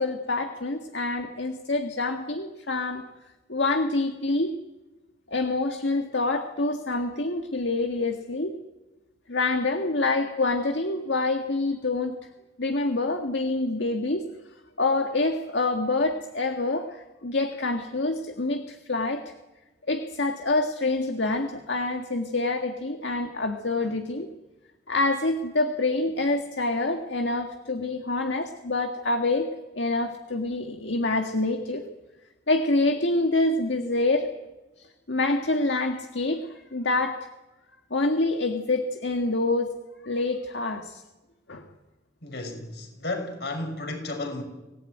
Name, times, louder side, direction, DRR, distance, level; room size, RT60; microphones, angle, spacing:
voice 1, 0.0-3.0 3.5-4.5 5.3-8.5 9.3-12.2 12.6-14.2 14.8-19.3 19.9-24.3 24.9-29.5 29.7-31.8 32.5-34.3 35.1-36.4 36.7-37.3 37.9-39.8 40.0-41.0 41.5-41.7, left 2 dB, 80° left, 1.8 m, -26 dB
voice 2, 42.2-44.4, left 2 dB, 60° left, 6.0 m, -33 dB
26.0 x 18.5 x 9.2 m
head